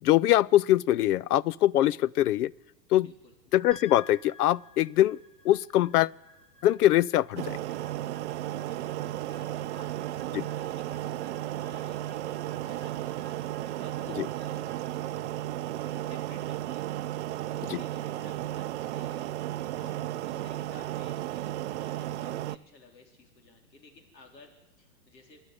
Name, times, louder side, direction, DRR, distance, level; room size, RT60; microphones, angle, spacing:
voice 1, 0.0-2.5 2.9-3.1 3.5-5.2 5.4-6.1 6.6-7.6 10.3-10.4 14.2-14.3 17.7-17.8, left 14 dB, 65° left, 0.6 m, -23 dB
voice 2, 3.0-3.3 8.3-15.3 15.8-16.9 17.5-19.3 19.7-25.4, left 3 dB, 85° left, 4.1 m, -55 dB
sound 1, 3.7-18.1, left 3 dB, ahead, 1.4 m, -56 dB
sound 2, 7.4-22.6, right 14 dB, 45° right, 0.6 m, -34 dB
26.0 x 10.5 x 9.6 m
hypercardioid pair, 140°, 49 cm